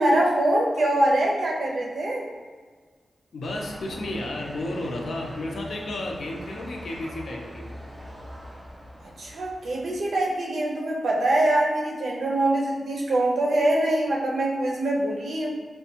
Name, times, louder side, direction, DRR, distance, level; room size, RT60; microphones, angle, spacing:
voice 1, 0.0-2.3 9.2-15.5, right 1 dB, 75° right, -2 dB, 0.7 m, -23 dB
voice 2, 3.3-7.7, left 1 dB, 70° left, 0 dB, 0.6 m, -32 dB
sound 1, 3.4-10.0, equal, 15° right, 0.5 m, -42 dB
5.0 x 2.2 x 2.8 m, 1.5 s
wide cardioid pair, 175°, 0 cm